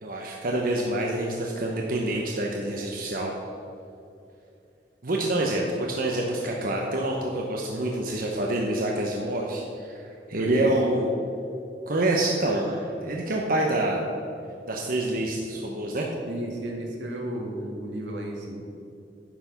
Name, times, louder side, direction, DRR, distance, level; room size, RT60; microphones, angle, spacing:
voice 1, 0.0-3.3 5.0-11.1 11.9-14.0 14.7-16.1, right 1 dB, 55° right, -1 dB, 0.9 m, -27 dB
voice 2, 16.3-18.6, right 1 dB, 85° right, 0 dB, 1.9 m, -33 dB
10.5 x 6.0 x 5.9 m, 2.6 s
head